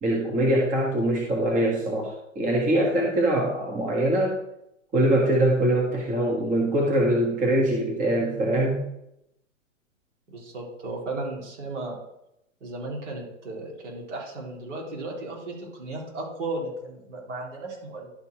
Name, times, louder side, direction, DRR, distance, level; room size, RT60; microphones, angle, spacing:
voice 1, 0.0-4.4 4.9-8.9, right 1 dB, 20° right, -1 dB, 1.5 m, -23 dB
voice 2, 10.3-12.0 12.6-18.1, right 2 dB, 65° right, -2 dB, 3.7 m, -35 dB
11.5 x 4.5 x 4.8 m, 0.81 s
hypercardioid pair, 120°, 39 cm